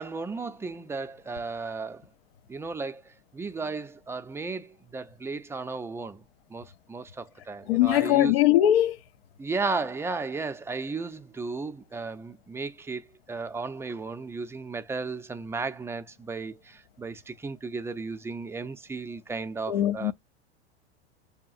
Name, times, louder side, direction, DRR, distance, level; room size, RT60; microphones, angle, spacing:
voice 1, 0.0-2.1 2.5-6.2 6.5-8.4 9.4-20.1, right 4 dB, 10° right, 0.4 m, -34 dB
voice 2, 7.7-9.0 19.7-20.1, left 13 dB, 65° left, 0.5 m, -21 dB
6.7 x 2.8 x 2.5 m
hypercardioid pair, 95°, 33 cm